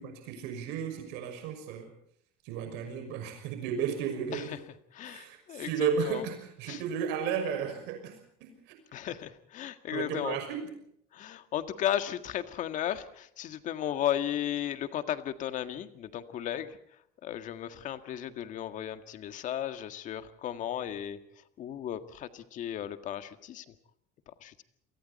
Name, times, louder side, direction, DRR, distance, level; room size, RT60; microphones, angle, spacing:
voice 1, 0.0-1.9 2.4-4.5 5.1-8.1 8.4-8.5 9.9-10.6, right 7 dB, 80° right, 6 dB, 6.0 m, -33 dB
voice 2, 4.9-6.2 6.7-6.8 8.9-10.4 11.1-16.8 17.2-21.2 21.6-23.7 24.3-24.6, left 11 dB, 45° left, 9 dB, 1.8 m, -35 dB
30.0 x 23.5 x 4.2 m, 0.71 s
cardioid pair, 160°, 18 cm